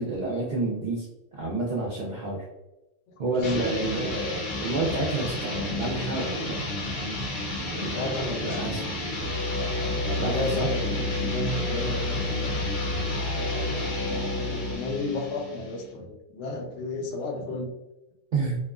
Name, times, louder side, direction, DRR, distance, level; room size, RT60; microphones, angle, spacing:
voice 1, 0.0-2.5 3.2-6.8 7.7-8.9 10.2-10.7 18.3-18.6, right 2 dB, 55° right, -4 dB, 0.5 m, -29 dB
voice 2, 3.1-4.0 7.7-8.9 10.2-12.6 14.0-17.7, left 2 dB, 75° left, 2 dB, 0.9 m, -33 dB
sound 1, 3.4-15.9, left 1 dB, 50° left, 0.7 m, -32 dB
sound 2, 9.2-14.8, left 2 dB, 75° right, 0.8 m, -30 dB
2.8 x 2.1 x 2.3 m, 0.98 s
omnidirectional pair, 1.2 m